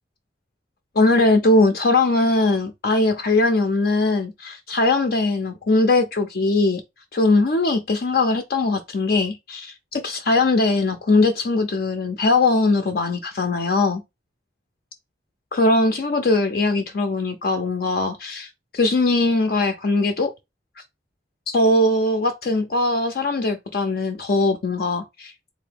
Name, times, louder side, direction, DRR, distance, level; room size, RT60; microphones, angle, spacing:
voice 1, 1.0-6.8 7.1-14.0 15.5-20.3 21.5-25.3, left 2 dB, 55° left, 0.5 m, -20 dB
3.8 x 2.6 x 3.3 m
head